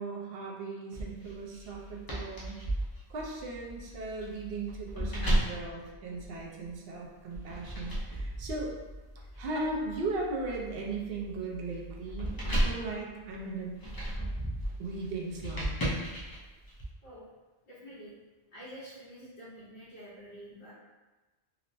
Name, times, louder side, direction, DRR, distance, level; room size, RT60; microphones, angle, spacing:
voice 1, 0.0-2.6 3.1-8.7 9.4-13.8 14.8-15.7, right 3 dB, 70° right, -2 dB, 0.8 m, -37 dB
sound 1, 0.9-6.7 7.3-16.8, right 1 dB, 30° left, 0.4 m, -35 dB
voice 2, 17.6-18.1 18.5-20.7, equal, 60° left, -10 dB, 0.9 m, -48 dB
2.9 x 2.0 x 2.6 m, 1.2 s
omnidirectional pair, 1.0 m